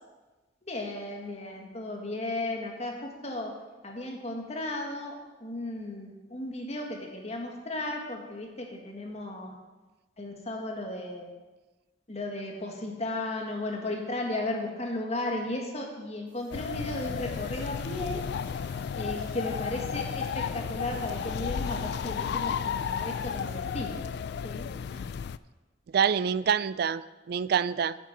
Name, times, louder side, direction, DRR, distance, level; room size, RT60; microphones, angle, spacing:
voice 1, 0.7-3.5 3.8-9.5 10.2-11.3 12.1-18.2 18.9-24.1 24.4-24.7, left 2 dB, 35° left, 1 dB, 1.7 m, -35 dB
sound 1, 16.3-24.1, right 3 dB, 75° right, 3.7 m, -55 dB
sound 2, 16.5-25.4, left 7 dB, 60° left, 0.3 m, -33 dB
voice 2, 25.9-28.0, right 7 dB, 60° right, 17 dB, 0.3 m, -26 dB
9.9 x 7.2 x 5.9 m, 1.2 s
head